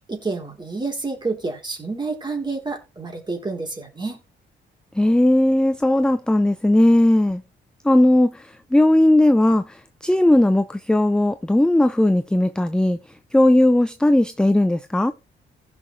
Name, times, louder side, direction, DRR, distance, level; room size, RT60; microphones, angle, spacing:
voice 1, 0.0-4.2, right 3 dB, 20° right, 3.5 m, -29 dB
voice 2, 4.9-7.4 7.8-13.0 13.3-15.1, left 1 dB, 5° left, 0.5 m, -17 dB
15.5 x 6.1 x 3.2 m
cardioid pair, 90°, 20 cm